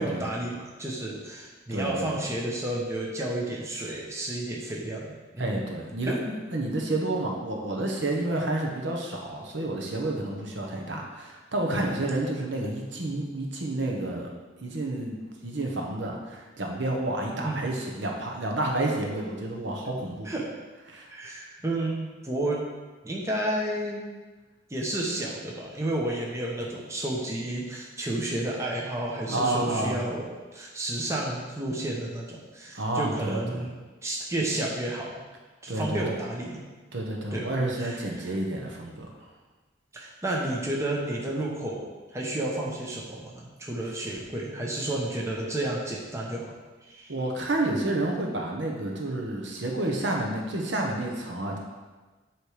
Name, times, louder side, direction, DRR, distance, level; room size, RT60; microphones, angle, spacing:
voice 1, 0.0-5.6 6.0-6.2 17.4-17.6 20.2-20.5 21.1-22.7 23.0-24.0 24.7-33.7 34.0-35.1 35.6-36.6 37.3-37.5 37.8-38.3 39.9-46.5 46.9-47.1, right 1 dB, 15° right, -3 dB, 0.8 m, -31 dB
voice 2, 1.7-2.2 5.4-14.3 14.6-15.2 15.4-20.3 20.9-21.1 29.3-30.0 32.7-33.6 35.7-36.2 36.9-39.1 47.1-51.6, right 2 dB, 70° right, 0 dB, 1.0 m, -30 dB
8.1 x 3.2 x 4.9 m, 1.3 s
head